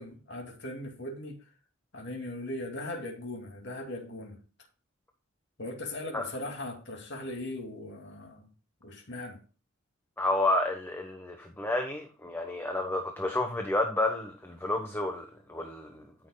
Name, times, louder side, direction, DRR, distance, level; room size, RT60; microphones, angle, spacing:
voice 1, 0.0-1.4 1.9-4.4 5.6-8.5 8.8-9.4, left 1 dB, 60° left, 2.6 m, -39 dB
voice 2, 10.2-16.0, left 2 dB, 10° left, 1.2 m, -30 dB
14.0 x 6.3 x 2.3 m
head